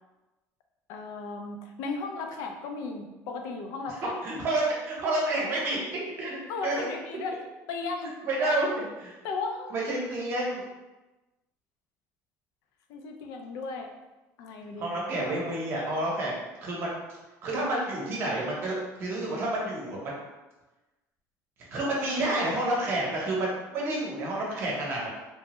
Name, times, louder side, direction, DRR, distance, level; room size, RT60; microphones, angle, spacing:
voice 1, 0.9-4.2 6.5-7.4 7.7-8.7 9.2-9.8 12.9-13.9 14.4-15.0 24.2-24.3, left 4 dB, 65° left, 4 dB, 0.4 m, -35 dB
voice 2, 4.2-5.8 6.2-6.7 8.2-8.7 9.0-9.1 9.7-10.6 14.8-16.3 16.6-16.9 17.4-18.7 19.0-20.1 21.7-25.1, right 2 dB, 40° right, -3 dB, 0.8 m, -29 dB
3.3 x 2.1 x 2.9 m, 1.1 s
cardioid pair, 175°, 6 cm